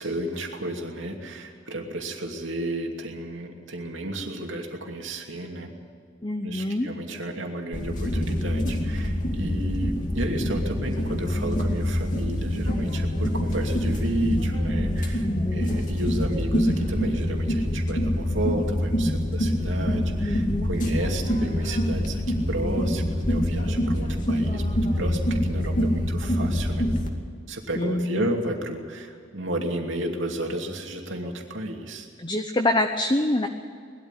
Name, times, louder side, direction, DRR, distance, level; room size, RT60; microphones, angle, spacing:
voice 1, 0.0-5.7 6.4-22.2 22.5-26.9 27.5-32.1, right 1 dB, 70° right, 2 dB, 2.7 m, -32 dB
voice 2, 6.2-6.9 15.2-15.7 20.2-20.7 27.8-28.3 32.2-33.5, left 1 dB, 25° left, 5 dB, 0.9 m, -26 dB
sound 1, 7.7-27.1, equal, 40° left, 2.3 m, -25 dB
20.5 x 13.0 x 9.9 m, 2.3 s
head